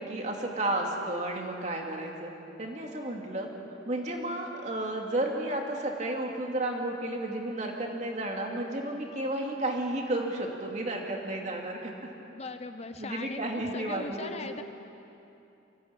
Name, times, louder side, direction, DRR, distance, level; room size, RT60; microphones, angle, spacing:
voice 1, 0.0-2.3 2.6-3.5 3.8-12.1 13.0-14.3, right 1 dB, 35° right, 1 dB, 2.6 m, -32 dB
voice 2, 12.3-14.6, left 3 dB, 35° left, 8 dB, 0.7 m, -40 dB
24.0 x 16.5 x 8.9 m, 2.9 s
head